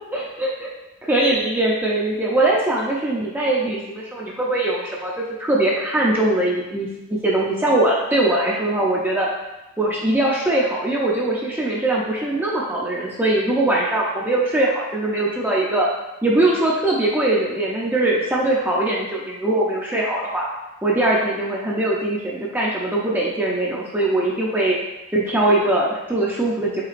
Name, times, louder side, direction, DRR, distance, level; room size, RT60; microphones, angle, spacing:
voice 1, 0.1-0.7 1.0-5.1 5.4-9.3 9.8-15.9 16.2-20.5 20.8-24.8 25.1-26.8, right 1 dB, 10° right, -4 dB, 0.4 m, -21 dB
5.9 x 3.3 x 2.5 m, 1.0 s
head